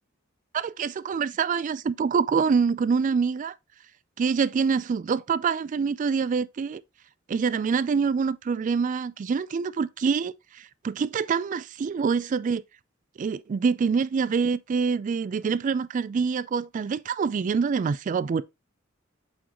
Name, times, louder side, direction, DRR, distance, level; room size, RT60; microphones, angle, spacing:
voice 1, 0.5-3.5 4.2-6.8 7.3-12.6 13.2-18.4, right 5 dB, 40° right, 0.3 m, -25 dB
8.6 x 3.8 x 2.9 m
head